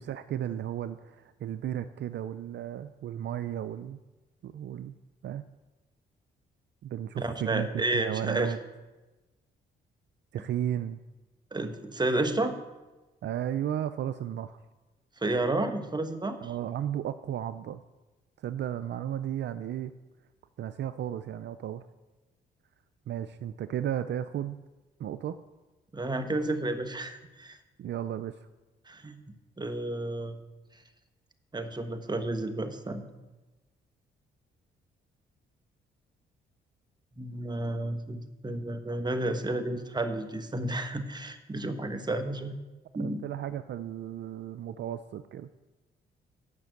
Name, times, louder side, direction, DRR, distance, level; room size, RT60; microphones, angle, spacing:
voice 1, 0.0-4.0 4.4-4.9 5.2-5.4 6.8-8.6 10.3-11.0 13.2-14.6 16.4-17.8 18.4-19.9 20.6-21.8 23.1-24.6 25.0-25.4 27.8-28.3 43.0-45.5, right 10 dB, 60° right, 12 dB, 0.5 m, -34 dB
voice 2, 7.2-8.5 11.5-12.5 15.2-16.4 25.9-27.6 28.9-29.2 29.6-30.4 31.5-33.0 37.2-42.5 42.9-43.2, right 2 dB, 20° right, 8 dB, 1.3 m, -31 dB
9.6 x 5.9 x 7.7 m, 1.1 s
supercardioid pair, 60°, 20 cm